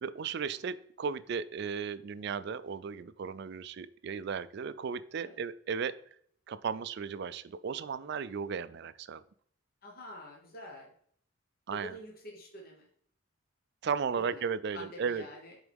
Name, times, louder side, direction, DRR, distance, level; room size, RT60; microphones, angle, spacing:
voice 1, 0.0-6.0 6.5-9.2 11.7-12.0 13.8-15.2, right 6 dB, 50° right, 14 dB, 0.3 m, -35 dB
voice 2, 9.8-10.9 11.7-12.9 14.3-14.4 14.7-15.6, left 1 dB, 45° left, 0 dB, 1.2 m, -47 dB
8.1 x 4.0 x 3.5 m, 0.62 s
head